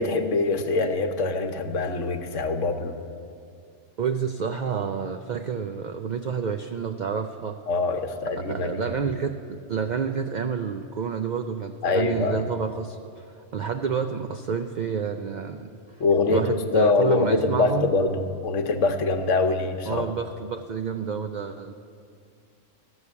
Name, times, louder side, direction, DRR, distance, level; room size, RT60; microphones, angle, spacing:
voice 1, 0.0-3.0 7.7-9.1 11.8-12.5 16.0-20.1, left 3 dB, 75° left, 7 dB, 1.1 m, -24 dB
voice 2, 4.0-7.6 8.2-13.3 13.5-15.7 16.3-17.9 19.9-21.7, right 6 dB, 90° right, 6 dB, 0.4 m, -29 dB
13.5 x 6.4 x 8.4 m, 2.4 s
omnidirectional pair, 1.3 m